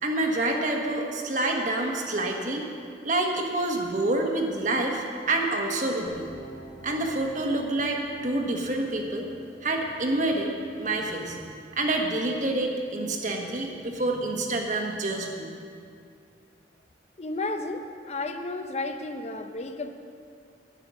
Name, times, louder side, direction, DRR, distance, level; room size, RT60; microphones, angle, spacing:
voice 1, 0.0-2.7 3.0-6.3 6.8-9.3 9.6-10.5 10.8-11.4 11.7-15.5, right 2 dB, 45° right, 1 dB, 1.4 m, -27 dB
sound 1, 6.1-12.1, right 1 dB, 80° left, 1.9 m, -50 dB
voice 2, 17.2-19.9, left 2 dB, 40° left, 6 dB, 0.7 m, -32 dB
11.0 x 9.7 x 6.3 m, 2.3 s
head